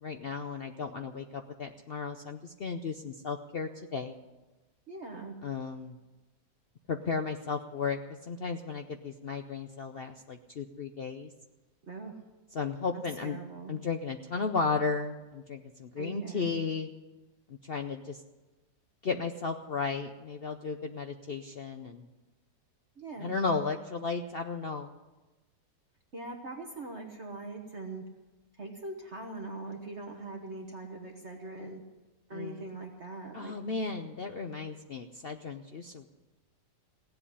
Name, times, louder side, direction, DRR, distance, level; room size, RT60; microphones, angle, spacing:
voice 1, 0.0-4.1 5.4-6.0 6.9-8.0 8.3-11.3 12.5-13.4 13.7-16.9 17.6-18.2 19.0-22.1 23.2-24.9 32.3-32.6 33.3-36.1, left 4 dB, 70° left, 6 dB, 0.5 m, -34 dB
voice 2, 4.9-5.3 11.9-12.1 12.9-13.7 16.0-16.5 23.0-23.4 26.1-28.0 28.6-31.8 32.3-33.6, right 3 dB, 40° right, 3 dB, 1.4 m, -41 dB
17.0 x 7.9 x 10.0 m, 1.1 s
omnidirectional pair, 1.9 m